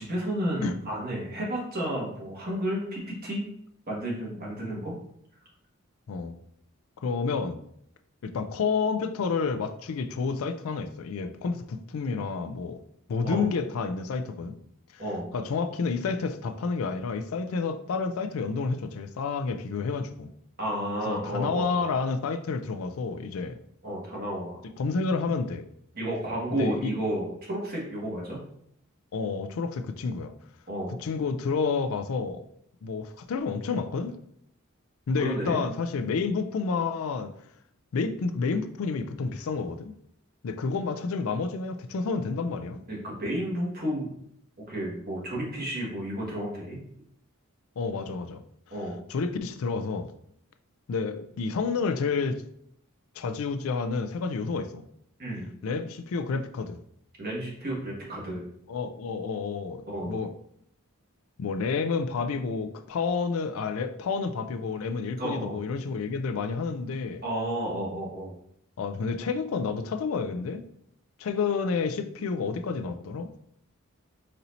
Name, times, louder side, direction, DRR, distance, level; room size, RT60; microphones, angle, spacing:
voice 1, 0.0-3.4 3.9-5.0 13.2-13.5 15.0-15.3 20.6-21.9 23.8-24.6 25.9-28.4 30.7-30.9 35.2-35.6 42.9-44.1 44.6-46.8 48.7-49.0 55.2-55.5 57.2-58.4 59.9-60.1 65.2-65.6 67.2-68.3, right 1 dB, 45° right, 1.4 m, -32 dB
voice 2, 7.0-7.6 8.2-12.8 13.1-14.6 14.9-15.0 15.3-20.3 21.1-23.6 24.8-25.6 26.5-26.9 29.1-30.3 31.0-32.4 32.8-34.2 35.1-37.3 37.9-39.9 40.4-42.8 47.8-48.4 49.1-50.1 50.9-52.4 53.2-54.8 55.6-56.8 58.7-60.3 61.4-67.2 68.8-70.6 71.2-73.3, left 4 dB, 70° left, 0.4 m, -29 dB
4.2 x 2.7 x 4.1 m
head